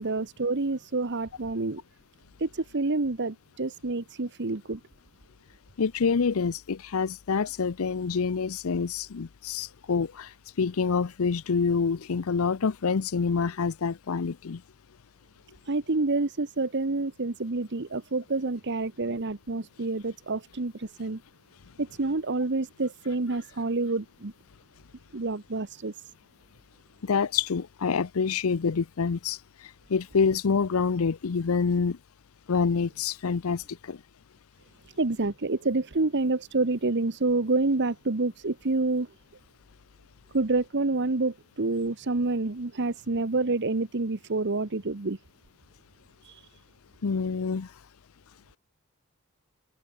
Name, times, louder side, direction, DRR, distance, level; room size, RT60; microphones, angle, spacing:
voice 1, 0.0-1.8 2.4-4.8 15.7-21.2 21.8-24.3 25.1-25.9 35.0-39.1 40.3-45.2 46.2-46.4, right 3 dB, 55° right, 1.1 m, -28 dB
voice 2, 5.8-10.3 10.6-14.6 27.0-29.4 29.9-32.0 32.5-34.0 47.0-47.7, left 5 dB, 75° left, 0.6 m, -27 dB
head